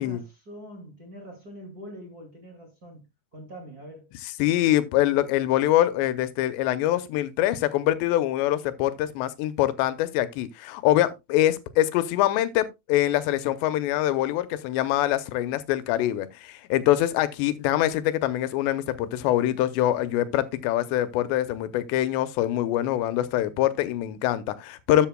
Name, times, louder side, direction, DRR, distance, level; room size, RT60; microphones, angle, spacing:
voice 1, 0.0-3.0 3.3-4.1, equal, 30° right, 1.8 m, -44 dB
voice 2, 4.4-25.1, left 13 dB, 90° left, 2.9 m, -24 dB
13.0 x 7.9 x 2.2 m
omnidirectional pair, 4.9 m